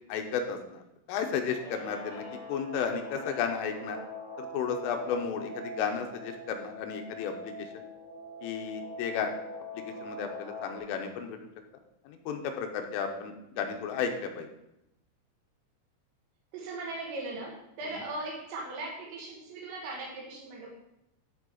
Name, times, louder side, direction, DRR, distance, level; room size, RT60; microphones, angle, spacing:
voice 1, 0.1-0.8 1.1-4.0 4.4-7.7 8.4-9.3 9.7-11.4 12.1-14.5 17.8-18.0, left 6 dB, 80° left, 4 dB, 3.3 m, -33 dB
Guitar, 1.4-10.8, left 1 dB, 15° right, 1.7 m, -43 dB
voice 2, 16.5-20.7, right 2 dB, 80° right, -2 dB, 4.5 m, -38 dB
12.5 x 5.0 x 3.9 m, 0.85 s
omnidirectional pair, 5.7 m